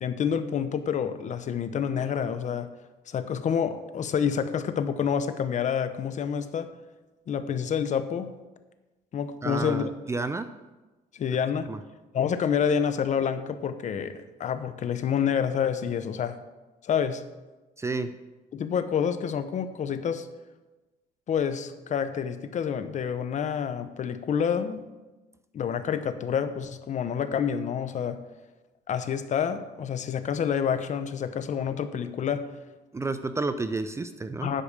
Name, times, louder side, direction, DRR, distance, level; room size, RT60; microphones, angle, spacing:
voice 1, 0.0-2.7 3.1-6.7 7.3-8.3 9.1-9.9 11.1-11.7 12.1-16.4 16.8-17.2 18.5-20.3 21.3-24.8 25.5-28.2 28.9-32.4 34.4-34.6, left 7 dB, 45° left, 11 dB, 0.8 m, -28 dB
voice 2, 9.4-10.5 11.7-11.8 17.8-18.1 32.9-34.5, right 3 dB, 15° right, 11 dB, 0.5 m, -30 dB
10.0 x 4.9 x 6.6 m, 1.1 s
cardioid pair, 110°, 17 cm